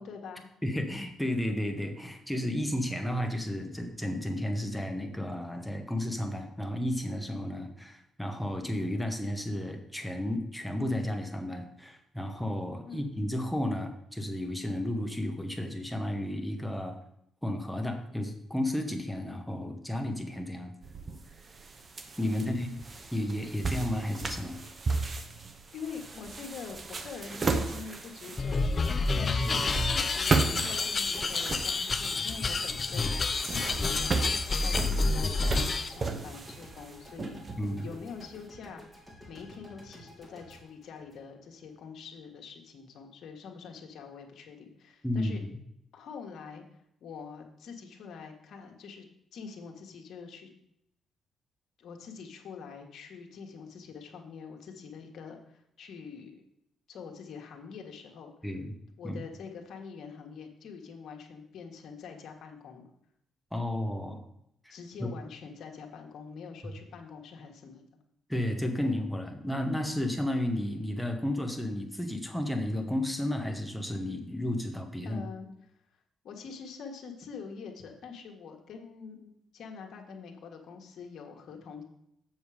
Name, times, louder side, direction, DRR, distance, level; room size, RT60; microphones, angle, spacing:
voice 1, 0.0-0.5 12.9-13.1 22.2-22.8 25.7-33.1 33.5-37.4 37.8-38.8 39.3-45.4 45.9-46.6 47.0-49.0 49.3-50.5 51.8-56.4 56.9-58.3 59.0-62.9 64.7-67.9 75.0-75.5 76.2-81.8, left 5 dB, 65° left, 2 dB, 1.5 m, -45 dB
voice 2, 0.6-17.0 17.4-20.7 22.2-22.7 23.1-24.6 29.4-29.6 37.6-37.9 45.0-45.3 58.4-58.7 59.0-59.2 63.5-64.2 64.6-64.7 65.0-65.1 68.3-75.2, left 1 dB, ahead, 4 dB, 1.4 m, -32 dB
sound 1, 20.8-38.3, right 3 dB, 35° right, 0.9 m, -35 dB
sound 2, 28.4-35.9, left 3 dB, 35° left, 0.6 m, -29 dB
sound 3, 29.6-41.8, left 1 dB, 15° right, 3.2 m, -52 dB
7.3 x 6.9 x 4.9 m, 0.77 s
cardioid pair, 90°, 0 cm